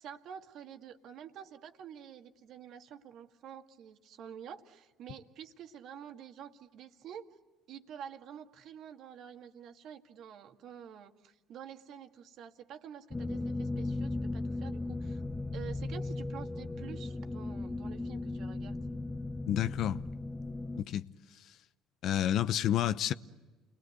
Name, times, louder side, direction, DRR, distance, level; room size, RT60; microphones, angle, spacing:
voice 1, 0.0-7.4 7.7-15.2 15.5-18.8, right 8 dB, 65° right, 1.9 m, -48 dB
sound 1, 13.1-20.8, left 2 dB, 15° left, 1.4 m, -37 dB
voice 2, 19.5-20.0 20.8-21.1 22.0-23.1, left 11 dB, 60° left, 0.8 m, -29 dB
29.5 x 21.0 x 8.0 m
hypercardioid pair, 65°, 0 cm